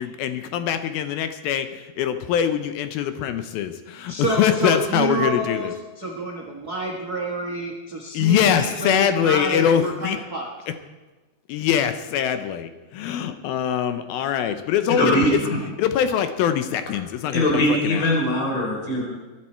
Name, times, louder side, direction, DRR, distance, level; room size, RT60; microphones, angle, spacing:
voice 1, 0.0-5.7 8.1-10.2 11.5-15.4 15.8-18.1, left 9 dB, 75° left, 9 dB, 2.4 m, -23 dB
voice 2, 4.1-10.5, right 2 dB, 80° right, -1 dB, 0.8 m, -28 dB
voice 3, 15.0-15.6 17.3-19.0, left 1 dB, 55° left, -1 dB, 5.1 m, -21 dB
22.5 x 11.0 x 4.4 m, 1.2 s
omnidirectional pair, 4.7 m